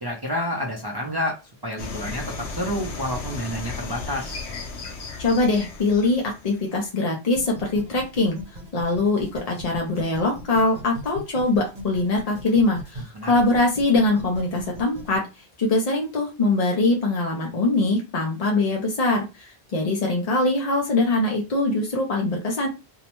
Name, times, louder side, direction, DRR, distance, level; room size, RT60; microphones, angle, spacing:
voice 1, 0.0-1.4 1.6-4.4 13.1-13.3, equal, 35° right, -1 dB, 0.4 m, -29 dB
sound 1, 1.8-6.9, left 3 dB, 80° left, 1.0 m, -35 dB
voice 2, 5.2-8.4 8.7-15.2 15.6-22.7, left 2 dB, 45° left, 0 dB, 0.5 m, -22 dB
sound 2, 7.4-15.2, right 1 dB, 55° right, 1.0 m, -39 dB
2.7 x 2.1 x 2.9 m, 0.28 s
omnidirectional pair, 1.1 m